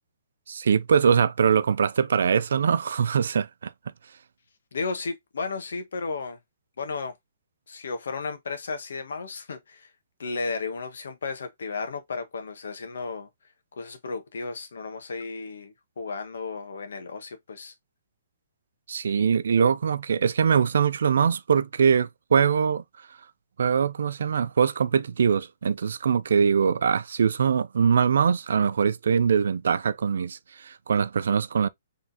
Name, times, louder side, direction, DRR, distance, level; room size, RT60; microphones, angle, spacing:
voice 1, 0.5-3.7 18.9-22.8 23.6-31.7, right 6 dB, 75° right, 0.4 m, -22 dB
voice 2, 4.7-6.4 6.8-7.1 7.7-9.9 10.2-13.3 13.8-17.7, left 4 dB, 80° left, 1.2 m, -34 dB
3.9 x 3.6 x 2.7 m
hypercardioid pair, 150°, 0 cm